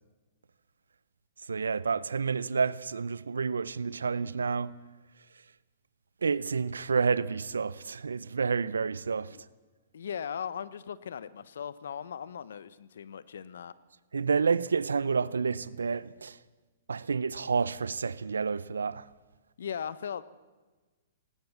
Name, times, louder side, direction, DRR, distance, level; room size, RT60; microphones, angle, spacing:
voice 1, 1.4-4.8 5.3-5.4 6.2-9.4 14.1-16.4 16.9-19.1, right 5 dB, 85° right, 0.7 m, -29 dB
voice 2, 9.9-13.7 19.6-20.2, left 8 dB, 75° left, 1.0 m, -38 dB
19.5 x 18.5 x 7.3 m
hypercardioid pair, 125°, 0 cm